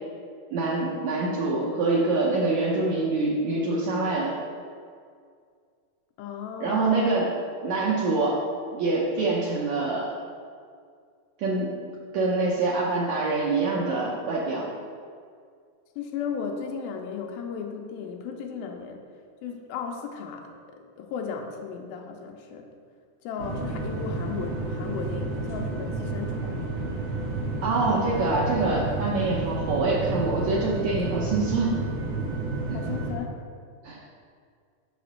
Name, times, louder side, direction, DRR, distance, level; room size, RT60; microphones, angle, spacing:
voice 1, 0.5-4.3 6.6-7.3 7.6-8.4 8.7-10.1 11.4-11.7 12.1-14.6 27.6-31.8 33.8-34.0, right 3 dB, 90° right, -5 dB, 1.6 m, -25 dB
voice 2, 6.2-7.1 16.0-19.0 19.4-22.7 23.2-26.7 32.7-33.4, left 6 dB, 85° left, 3 dB, 2.4 m, -35 dB
sound 1, 23.4-33.1, right 3 dB, 65° right, 1.2 m, -31 dB
5.8 x 5.0 x 6.5 m, 2.1 s
omnidirectional pair, 4.4 m